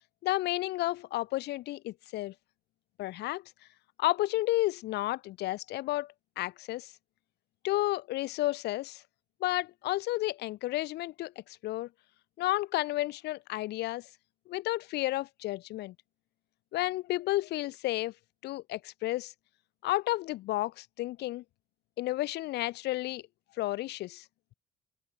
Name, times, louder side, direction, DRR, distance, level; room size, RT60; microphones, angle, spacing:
voice 1, 0.2-2.3 3.0-3.4 4.0-6.9 7.6-9.0 9.4-11.9 12.4-14.1 14.5-15.9 16.7-18.1 18.4-19.3 19.8-21.4 22.0-23.2 23.6-24.3, left 17 dB, 80° left, 2.1 m, -32 dB
open air
cardioid pair, 110°, 17 cm